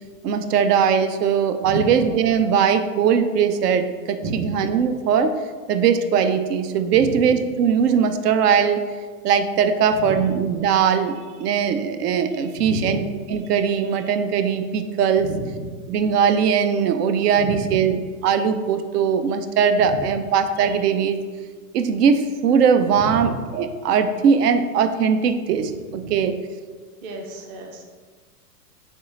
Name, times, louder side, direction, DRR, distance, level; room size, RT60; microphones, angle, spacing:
voice 1, 0.2-5.4 5.7-8.8 9.2-13.0 13.3-15.3 15.9-21.2 21.7-26.4, right 7 dB, 75° right, 9 dB, 0.6 m, -20 dB
voice 2, 6.9-7.2 10.0-10.3 12.6-12.9 15.2-15.6 17.4-17.8 22.9-23.3 26.0-26.1 27.0-27.9, right 3 dB, 25° right, 1 dB, 0.3 m, -30 dB
3.6 x 3.1 x 4.0 m, 1.5 s
hypercardioid pair, 110°, 48 cm